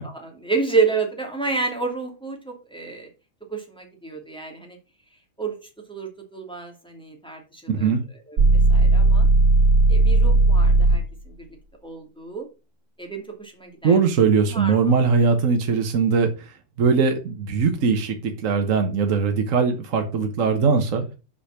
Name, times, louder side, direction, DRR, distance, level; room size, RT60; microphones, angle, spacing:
voice 1, 0.0-3.1 3.5-4.8 5.4-5.6 5.9-7.9 8.3-8.4 8.7-9.3 9.9-11.4 11.8-12.5 13.0-14.0 14.5-14.9, right 4 dB, 5° left, 1 dB, 2.5 m, -29 dB
voice 2, 7.7-8.0 13.8-16.5 16.8-21.0, right 5 dB, 55° right, 5 dB, 1.4 m, -20 dB
sound 1, 8.4-11.2, right 2 dB, 90° right, 2.3 m, -16 dB
7.7 x 5.1 x 5.8 m, 0.31 s
omnidirectional pair, 1.6 m